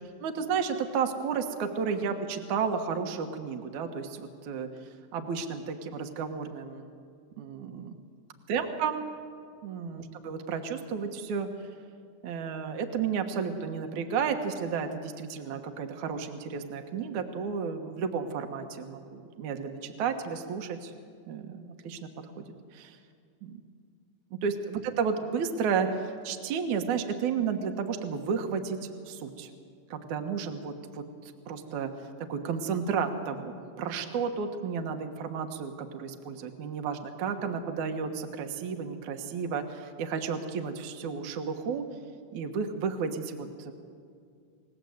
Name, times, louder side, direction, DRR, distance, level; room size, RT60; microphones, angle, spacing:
voice 1, 0.2-4.7 5.1-6.9 7.4-7.9 8.5-9.1 9.6-11.5 12.2-20.9 21.3-22.4 22.7-23.0 23.4-23.6 24.3-28.8 29.1-29.5 29.9-31.9 32.3-41.8 42.3-43.7, right 6 dB, 65° right, 6 dB, 2.5 m, -32 dB
29.0 x 17.5 x 8.0 m, 2.3 s
omnidirectional pair, 4.1 m